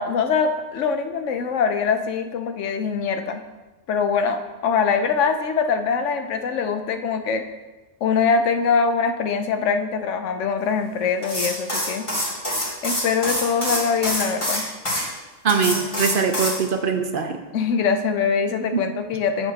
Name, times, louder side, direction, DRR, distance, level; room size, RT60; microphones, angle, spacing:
voice 1, 0.0-3.4 3.9-7.4 8.0-12.1 12.8-14.6 17.5-19.5, left 5 dB, 85° left, 7 dB, 1.1 m, -23 dB
sound 1, 11.2-15.0 15.5-16.6, left 1 dB, 25° left, 2.6 m, -25 dB
voice 2, 15.4-17.4 18.7-18.8, right 5 dB, 55° right, 5 dB, 0.8 m, -22 dB
9.6 x 8.1 x 2.9 m, 1.2 s
omnidirectional pair, 1.2 m